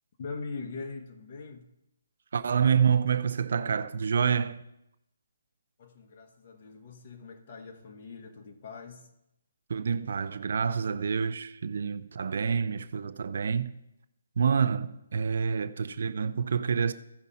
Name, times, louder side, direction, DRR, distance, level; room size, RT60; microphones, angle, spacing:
voice 1, 0.2-1.7 5.8-9.1, left 4 dB, 40° left, 1.3 m, -42 dB
voice 2, 2.3-4.6 9.7-13.8 14.4-16.9, right 6 dB, 60° right, 0.6 m, -27 dB
15.0 x 5.3 x 4.2 m
hypercardioid pair, 160°, 0 cm